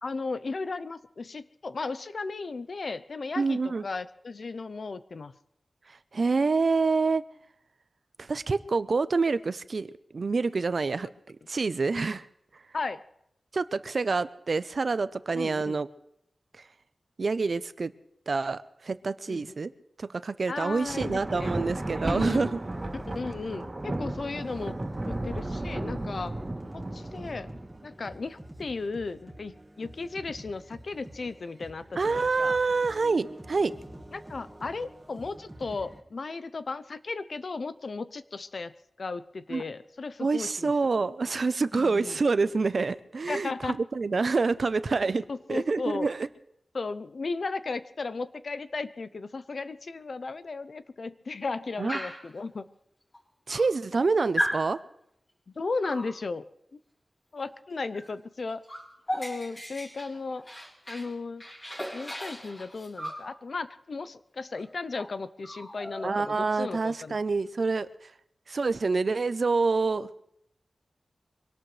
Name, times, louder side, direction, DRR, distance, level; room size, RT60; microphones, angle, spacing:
voice 1, 0.0-5.3 12.7-13.0 15.3-15.8 19.3-19.5 20.5-21.5 22.0-22.5 23.1-24.8 25.0-26.3 26.7-27.5 27.8-32.6 34.1-38.7 39.0-40.7 41.7-42.2 43.3-43.8 45.3-46.1 46.7-52.7 55.5-56.5 56.7-56.8 57.3-58.6 59.2-60.4 60.9-61.5 61.9-67.2, left 3 dB, 60° left, 13 dB, 0.7 m, -35 dB
voice 2, 3.4-3.8 6.1-7.2 8.2-12.3 13.5-15.9 17.2-17.9 18.3-19.7 20.0-22.6 32.0-33.7 39.5-39.6 40.2-45.2 45.5-46.3 51.8-52.0 53.5-54.8 66.0-67.9 68.5-70.1, right 4 dB, 55° right, 14 dB, 0.6 m, -27 dB
Thunder, 20.7-27.9, right 1 dB, 35° right, 3.3 m, -34 dB
sound 1, 20.9-36.0, right 1 dB, 10° right, 1.8 m, -47 dB
Dog, 51.9-52.3 53.1-53.2 53.5-54.0 54.4-54.7 55.8-56.1 57.9-58.1 58.4-61.1 61.4-63.3 64.5-64.7 65.0-65.1 65.4-66.7, equal, 25° left, 5.4 m, -35 dB
24.5 x 18.0 x 3.3 m, 0.75 s
wide cardioid pair, 110°, 0 cm